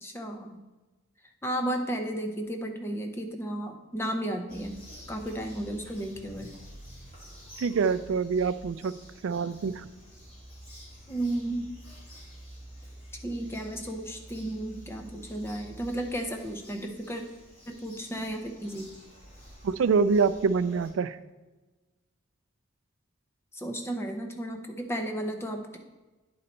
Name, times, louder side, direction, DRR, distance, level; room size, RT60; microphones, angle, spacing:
voice 1, 0.0-0.6 1.4-4.8 5.1-6.5 11.1-11.7 13.2-17.2 17.7-18.9 23.5-25.8, right 1 dB, 10° left, 4 dB, 0.6 m, -33 dB
Bird vocalization bird call bird song, 4.5-20.9, equal, 25° left, 2.4 m, -49 dB
voice 2, 7.6-8.9 9.2-9.8 19.6-21.2, right 5 dB, 70° right, 14 dB, 0.3 m, -25 dB
9.6 x 4.0 x 4.3 m, 1.2 s
head